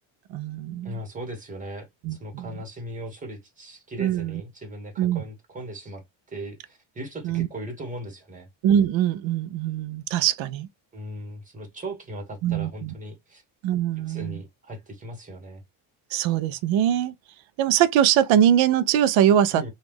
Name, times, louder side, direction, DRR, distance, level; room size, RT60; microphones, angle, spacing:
voice 1, 0.3-0.9 2.0-2.5 4.0-4.3 5.0-5.2 7.2-7.5 8.6-10.7 12.4-12.9 13.6-14.4 16.1-17.1 17.6-19.7, right 10 dB, 70° right, 0.6 m, -22 dB
voice 2, 0.8-8.5 10.9-13.4 14.0-15.6 19.5-19.7, right 1 dB, 15° right, 1.2 m, -38 dB
3.0 x 2.4 x 3.4 m
cardioid pair, 165°, 48 cm